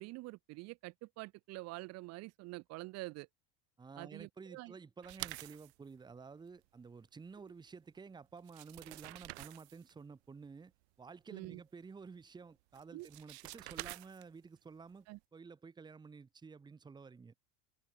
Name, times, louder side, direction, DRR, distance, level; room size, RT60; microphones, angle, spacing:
voice 1, 0.0-3.3 4.0-4.7 11.3-11.6 12.9-13.1 15.1-15.2, right 22 dB, 50° right, 1.4 m, -46 dB
voice 2, 3.8-10.7 11.0-15.1 15.3-17.3, right 5 dB, 15° right, 1.5 m, -52 dB
sound 1, 5.0-5.7 8.0-8.1 8.4-9.9 12.7-14.5, right 23 dB, 85° right, 0.9 m, -47 dB
supercardioid pair, 145°, 32 cm